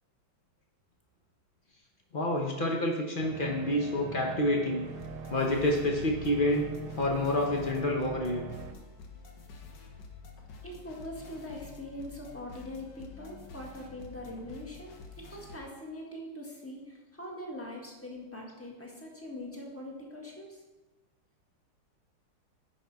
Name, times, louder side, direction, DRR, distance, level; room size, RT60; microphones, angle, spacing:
voice 1, 2.1-4.9 5.3-6.7 7.0-8.4, left 1 dB, 85° left, 0 dB, 0.4 m, -28 dB
sound 1, 3.2-8.7, right 5 dB, 70° right, 1.4 m, -42 dB
sound 2, 4.8-15.6, left 4 dB, 65° left, 1.5 m, -49 dB
voice 2, 10.6-20.6, left 1 dB, 10° left, -1 dB, 1.2 m, -42 dB
10.0 x 5.4 x 4.7 m, 1.2 s
omnidirectional pair, 2.3 m